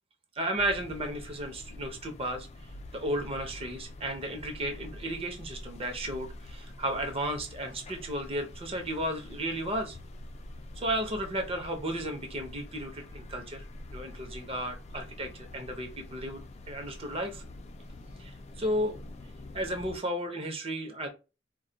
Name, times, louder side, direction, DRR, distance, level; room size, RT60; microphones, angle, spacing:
voice 1, 0.4-2.5 2.9-10.0 10.8-13.6 13.9-16.4 16.7-17.4 18.2-19.0 19.5-21.1, right 1 dB, 30° right, 4 dB, 0.7 m, -34 dB
sound 1, 0.6-20.0, left 1 dB, 35° left, 0.3 m, -46 dB
2.3 x 2.1 x 3.8 m, 0.29 s
head